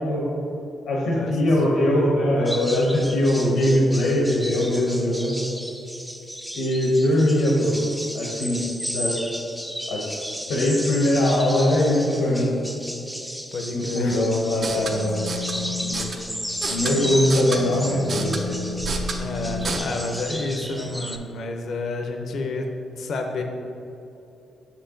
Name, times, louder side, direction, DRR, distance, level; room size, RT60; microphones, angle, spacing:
voice 1, 0.8-5.3 6.5-7.7 8.1-8.6 8.9-9.1 9.9-10.0 10.5-12.5 13.7-15.1 15.8-16.1 16.7-18.6, left 1 dB, 85° left, -4 dB, 1.1 m, -21 dB
voice 2, 1.7-2.6 13.5-14.2 19.2-22.7 23.0-23.4, left 2 dB, 65° left, 3 dB, 0.6 m, -30 dB
sound 1, 2.5-21.2, equal, ahead, 0.4 m, -34 dB
sound 2, 14.5-19.8, equal, 50° right, 0.6 m, -30 dB
6.4 x 4.5 x 3.9 m, 2.8 s
cardioid pair, 100°, 0 cm